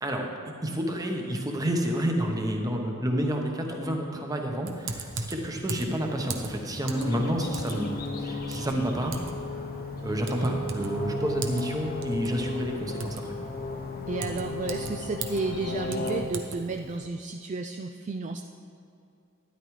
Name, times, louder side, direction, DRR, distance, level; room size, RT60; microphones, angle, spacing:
voice 1, 0.0-9.2 10.0-13.3, equal, 15° right, 2 dB, 1.0 m, -29 dB
Typing, 4.6-17.0, right 4 dB, 65° right, 0.8 m, -40 dB
sound 1, 6.9-16.2, left 2 dB, 45° left, 0.8 m, -34 dB
voice 2, 14.1-18.4, right 3 dB, 35° right, 5 dB, 0.3 m, -32 dB
12.5 x 10.5 x 3.2 m, 2.6 s
head